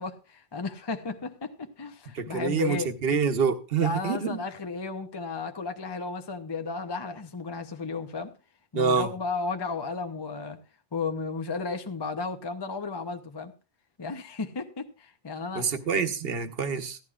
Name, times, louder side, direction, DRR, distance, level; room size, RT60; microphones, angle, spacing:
voice 1, 0.0-2.9 3.8-8.3 8.7-10.6 10.9-13.5 14.0-15.7, left 4 dB, 30° left, 0.7 m, -34 dB
voice 2, 2.1-4.4 8.7-9.1 15.5-17.0, right 6 dB, 70° right, 1.1 m, -26 dB
15.5 x 11.5 x 2.4 m
omnidirectional pair, 1.1 m